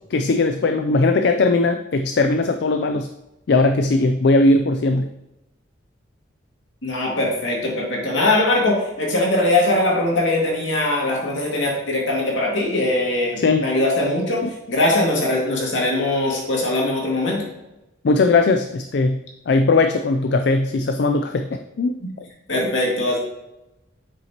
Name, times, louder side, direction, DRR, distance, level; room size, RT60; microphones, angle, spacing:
voice 1, 0.1-3.1 3.5-5.1 13.4-13.7 14.4-14.5 18.0-19.2 19.5-22.0, left 3 dB, 55° left, 6 dB, 0.4 m, -19 dB
voice 2, 6.8-14.4 14.7-17.5 22.5-23.2, left 2 dB, 75° left, -2 dB, 2.1 m, -21 dB
7.8 x 6.1 x 2.9 m, 0.94 s
head